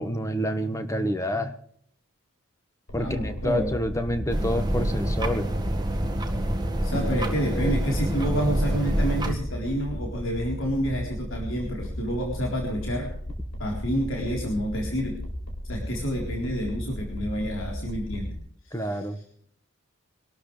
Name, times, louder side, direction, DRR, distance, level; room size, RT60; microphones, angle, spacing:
voice 1, 0.0-1.6 2.9-5.5 6.9-7.0 7.5-7.7 18.7-19.2, equal, 15° left, 8 dB, 1.4 m, -28 dB
sound 1, 2.9-18.4, equal, 85° left, 4.5 m, -35 dB
voice 2, 3.0-3.7 6.8-13.1 13.6-15.2 15.7-18.4 18.6-19.0, equal, 65° left, 0 dB, 4.0 m, -29 dB
sound 2, 4.3-9.3, right 1 dB, 20° right, 1.8 m, -27 dB
24.0 x 13.0 x 3.4 m, 0.62 s
head